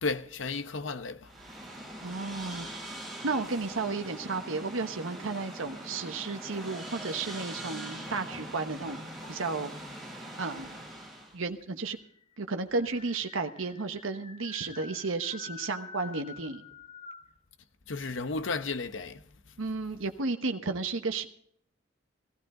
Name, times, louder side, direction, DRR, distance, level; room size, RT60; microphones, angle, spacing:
voice 1, 0.0-1.3 17.9-19.6, left 3 dB, 75° left, 0.8 m, -34 dB
sound 1, 1.2-11.4, right 1 dB, ahead, 6.4 m, -42 dB
voice 2, 2.0-2.7 3.2-9.0 9.3-9.7 10.4-10.8 11.3-12.0 12.4-16.6 19.6-21.3, right 3 dB, 90° right, 1.1 m, -33 dB
sound 2, 7.3-8.7 9.2-9.8 10.8-10.9 11.2-11.3 11.6-17.4, left 5 dB, 30° left, 0.9 m, -49 dB
17.0 x 14.5 x 3.8 m
head